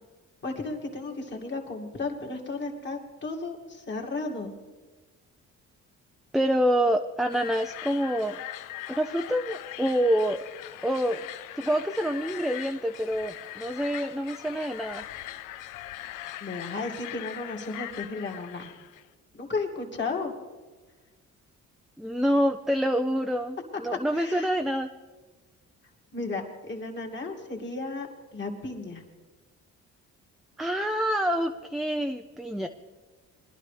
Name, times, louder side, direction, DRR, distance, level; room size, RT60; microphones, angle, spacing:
voice 1, 0.4-4.5 16.4-18.7 19.3-20.3 24.1-24.5 26.1-29.0, left 3 dB, 35° left, 1 dB, 2.3 m, -34 dB
voice 2, 6.3-8.4 8.9-10.4 10.8-11.2 11.6-15.0 22.0-24.9 30.6-32.7, equal, ahead, 5 dB, 0.5 m, -27 dB
sound 1, 7.3-19.0, left 14 dB, 90° left, 0.5 m, -41 dB
21.5 x 11.5 x 3.3 m, 1.3 s
cardioid pair, 90°, 30 cm